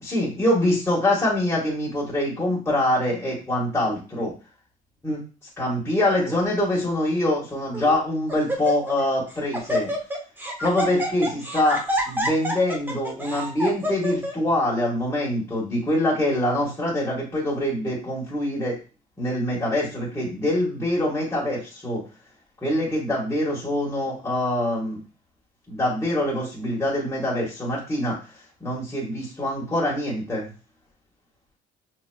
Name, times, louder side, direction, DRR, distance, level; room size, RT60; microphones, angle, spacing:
voice 1, 0.1-4.3 5.0-5.2 5.6-9.9 10.6-18.8 19.2-22.0 22.6-25.0 25.7-28.2 28.6-30.4, left 1 dB, 15° left, -6 dB, 1.7 m, -24 dB
Laughter, 6.0-6.4 7.1-7.2 7.7-8.0 8.3-9.0 9.3-14.3, equal, 10° right, 0.9 m, -28 dB
5.7 x 3.0 x 2.3 m, 0.34 s
cardioid pair, 110°, 17 cm